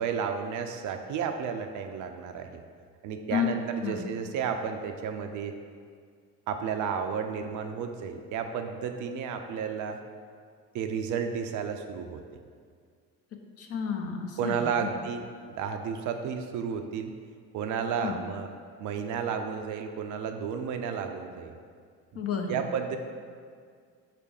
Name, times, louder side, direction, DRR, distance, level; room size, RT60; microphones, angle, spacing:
voice 1, 0.0-2.5 3.0-5.5 6.5-10.0 10.7-12.2 14.4-17.1 17.5-18.5 18.8-21.6 22.5-23.0, right 6 dB, 40° right, 6 dB, 0.5 m, -32 dB
voice 2, 3.8-4.1 13.6-14.9 18.0-18.2 22.2-22.6, left 7 dB, 30° left, 3 dB, 0.7 m, -31 dB
6.1 x 3.3 x 4.8 m, 2.1 s
figure-of-eight pair, 55°, 48 cm